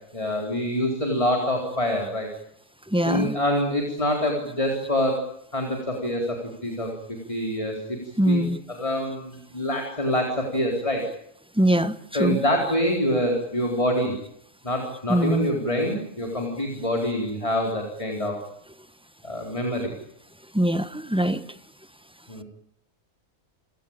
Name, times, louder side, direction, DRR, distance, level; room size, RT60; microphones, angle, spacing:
voice 1, 0.1-2.3 3.0-5.2 5.5-6.4 6.6-6.9 7.3-8.0 8.2-11.1 12.1-14.1 14.6-18.4 19.2-19.9 22.3-22.4, left 1 dB, 25° left, 2 dB, 4.2 m, -26 dB
voice 2, 2.9-3.4 8.2-8.6 11.6-12.4 15.1-15.5 20.5-21.4, right 1 dB, 5° right, 12 dB, 1.1 m, -22 dB
29.5 x 18.0 x 8.9 m, 0.73 s
omnidirectional pair, 1.3 m